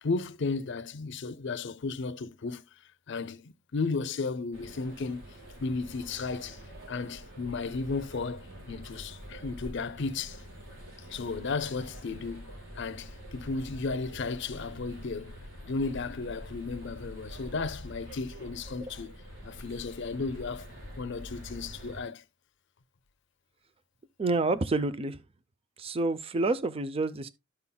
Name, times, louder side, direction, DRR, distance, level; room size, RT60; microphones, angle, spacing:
voice 1, 0.0-2.6 3.1-6.6 6.9-10.4 11.1-19.1 19.4-20.7 21.0-22.2, left 4 dB, 60° left, 0.6 m, -34 dB
sound 1, 4.5-22.0, equal, 80° right, 4.4 m, -46 dB
voice 2, 24.2-25.2 25.8-27.3, right 2 dB, 30° right, 0.5 m, -28 dB
13.0 x 5.6 x 2.2 m
head